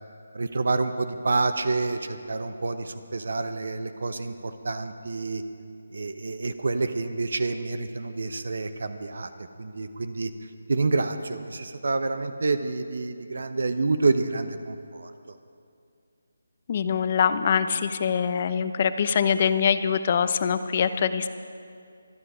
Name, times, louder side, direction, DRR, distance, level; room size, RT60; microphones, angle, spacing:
voice 1, 0.3-5.4 5.9-9.3 9.6-10.3 10.7-15.4, right 3 dB, 65° right, 10 dB, 0.9 m, -28 dB
voice 2, 16.7-21.3, left 7 dB, 40° left, 11 dB, 0.7 m, -24 dB
25.0 x 9.9 x 5.0 m, 2.4 s
figure-of-eight pair, 155°, 0 cm